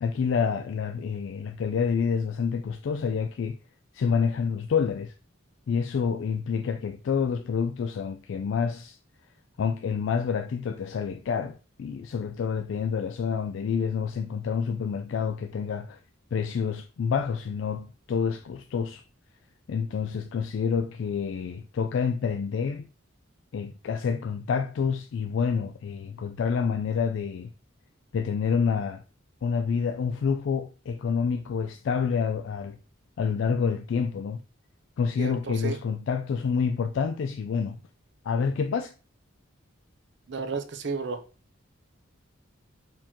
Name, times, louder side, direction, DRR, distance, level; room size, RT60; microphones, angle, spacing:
voice 1, 0.0-3.6 3.9-5.1 5.7-9.0 9.6-16.0 16.3-19.0 19.7-22.9 23.5-27.5 28.1-29.0 29.4-32.8 33.2-34.4 35.0-37.8 38.2-38.9, left 6 dB, 65° left, 0.3 m, -28 dB
voice 2, 35.2-35.8 40.3-41.2, right 4 dB, 55° right, 0.6 m, -32 dB
4.5 x 3.0 x 3.6 m
head